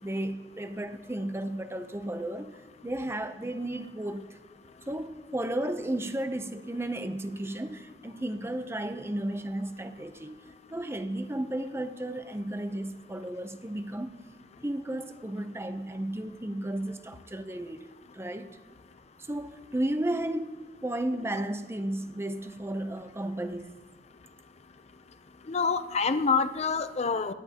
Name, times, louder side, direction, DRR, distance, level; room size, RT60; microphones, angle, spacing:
voice 1, 0.0-4.4 4.9-14.2 14.6-17.9 18.1-18.6 19.2-23.8, right 1 dB, 15° right, 0.7 m, -34 dB
voice 2, 25.5-27.3, left 5 dB, 40° left, 0.6 m, -26 dB
18.0 x 11.5 x 2.9 m
head